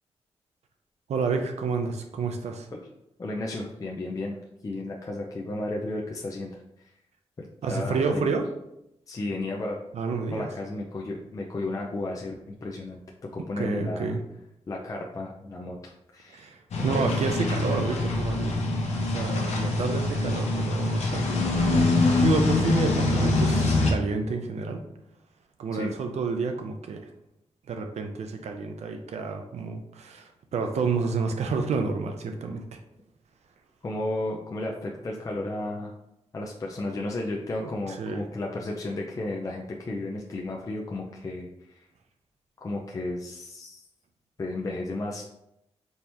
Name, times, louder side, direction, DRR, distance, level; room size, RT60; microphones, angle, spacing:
voice 1, 1.1-2.7 7.6-8.4 9.9-10.5 13.4-14.2 16.3-16.6 16.8-18.6 19.1-24.8 25.6-27.0 27.7-32.8 38.0-38.2, right 4 dB, 75° right, 5 dB, 0.6 m, -29 dB
voice 2, 3.2-4.4 4.6-6.6 7.4-8.3 9.1-9.8 10.3-13.0 13.3-14.2 14.7-16.5 16.8-17.1 25.7-25.9 33.8-35.9 36.3-41.5 41.7-41.9 42.6-43.8 44.4-45.3, left 2 dB, 30° left, -1 dB, 0.5 m, -33 dB
sound 1, 16.7-23.9, left 2 dB, 75° left, 0.8 m, -24 dB
4.3 x 2.9 x 3.4 m, 0.82 s
wide cardioid pair, 125°, 11 cm